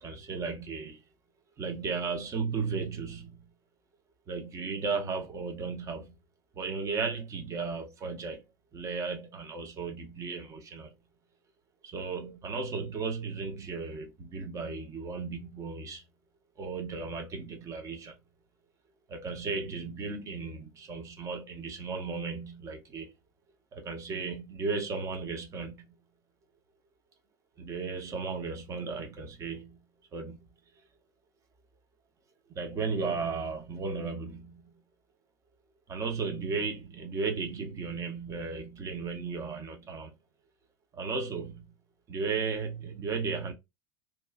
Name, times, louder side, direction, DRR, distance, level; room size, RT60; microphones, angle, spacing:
voice 1, 0.0-1.0 1.6-3.3 4.3-6.1 6.6-8.4 8.7-10.9 11.8-16.0 16.6-18.1 19.1-23.1 23.7-25.7 27.6-29.8 30.1-30.4 32.5-34.6 35.9-40.1 40.9-41.6 42.1-43.5, right 4 dB, 25° right, 0.8 m, -35 dB
3.0 x 2.3 x 2.3 m
figure-of-eight pair, 80°, 12 cm